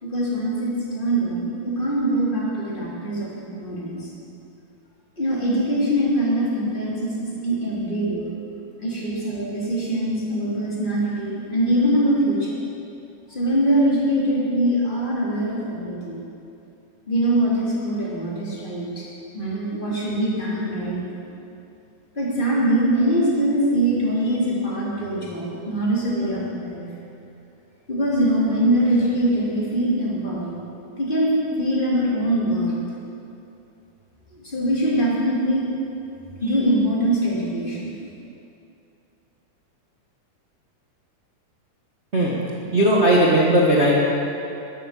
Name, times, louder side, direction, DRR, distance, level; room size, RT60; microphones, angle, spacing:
voice 1, 0.0-4.1 5.2-8.2 8.8-12.6 13.3-16.2 17.1-19.0 19.3-21.0 22.2-26.8 27.9-30.6 31.0-32.7 34.4-35.7 36.4-37.9, right 1 dB, 15° left, -6 dB, 2.6 m, -23 dB
voice 2, 42.7-43.9, right 1 dB, 60° right, -4 dB, 0.7 m, -17 dB
12.0 x 10.5 x 7.3 m, 2.7 s
omnidirectional pair, 4.0 m